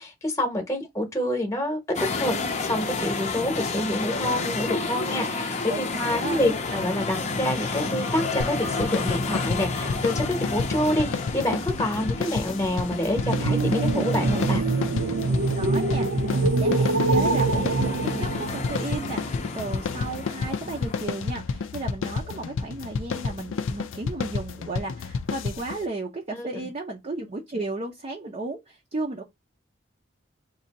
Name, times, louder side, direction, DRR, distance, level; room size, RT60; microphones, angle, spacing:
voice 1, 0.0-1.8 2.2-14.6 26.3-26.5, left 1 dB, 15° left, 0.9 m, -27 dB
sound 1, 1.9-21.0, left 3 dB, 35° left, 0.6 m, -31 dB
voice 2, 5.7-6.5 15.5-29.2, right 2 dB, 35° right, 0.5 m, -34 dB
sound 2, 8.4-25.9, left 5 dB, 90° left, 0.4 m, -31 dB
sound 3, 13.1-19.1, right 3 dB, 75° right, 0.6 m, -25 dB
2.7 x 2.5 x 4.0 m
head